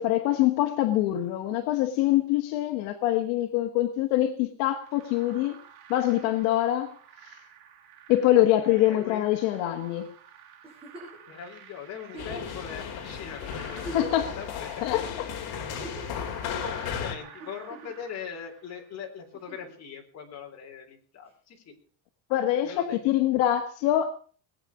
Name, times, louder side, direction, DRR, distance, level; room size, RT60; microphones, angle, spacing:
voice 1, 0.0-5.6 5.9-6.9 7.2-7.4 8.1-10.1 13.9-14.3 14.8-15.3 22.3-24.1, left 13 dB, 75° left, 1.6 m, -24 dB
sound 1, 4.8-19.2, right 8 dB, 70° right, 4.7 m, -51 dB
voice 2, 8.7-9.3 11.3-14.0 14.4-14.8 15.4-15.9 16.6-21.7 22.6-23.0, left 7 dB, 35° left, 3.8 m, -41 dB
Giggle, 10.6-11.2 12.1-12.6 13.2-13.3 13.7-14.4 15.6-16.2 17.4-18.1 19.3-19.8 21.3-21.4, right 1 dB, 15° right, 6.1 m, -43 dB
sound 2, 12.2-17.2, left 8 dB, 55° left, 2.6 m, -35 dB
20.5 x 9.2 x 6.1 m
cardioid pair, 165°, 45 cm